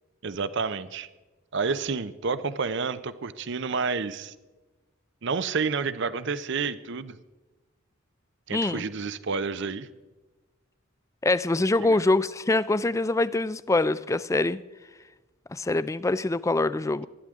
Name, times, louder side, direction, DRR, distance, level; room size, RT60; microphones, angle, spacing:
voice 1, 0.2-1.1 1.5-4.3 5.2-7.2 8.5-9.9 11.8-12.0, right 5 dB, 55° right, 14 dB, 0.6 m, -29 dB
voice 2, 8.5-8.8 11.2-14.6 15.5-17.1, left 2 dB, 15° left, 16 dB, 0.4 m, -24 dB
20.0 x 13.0 x 3.6 m, 1.2 s
head